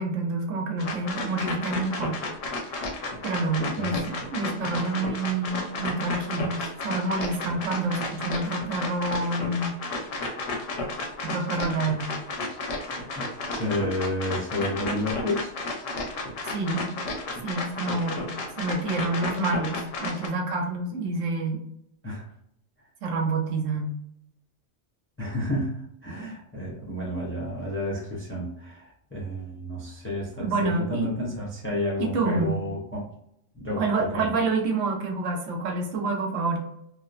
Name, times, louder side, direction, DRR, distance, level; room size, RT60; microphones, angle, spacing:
voice 1, 0.0-2.2 2.6-2.9 3.2-9.7 11.2-12.1 16.4-16.9 17.4-18.3 18.6-21.6 23.0-23.9 30.4-31.1 32.0-32.6 33.8-36.6, right 3 dB, 80° right, 2 dB, 1.0 m, -28 dB
sound 1, 0.8-20.3, left 2 dB, 80° left, 1.0 m, -33 dB
voice 2, 3.6-4.1 13.2-15.5 22.0-22.3 25.2-33.0 33.5-34.3, left 1 dB, 20° left, -4 dB, 0.4 m, -31 dB
2.9 x 2.1 x 2.4 m, 0.76 s
omnidirectional pair, 1.3 m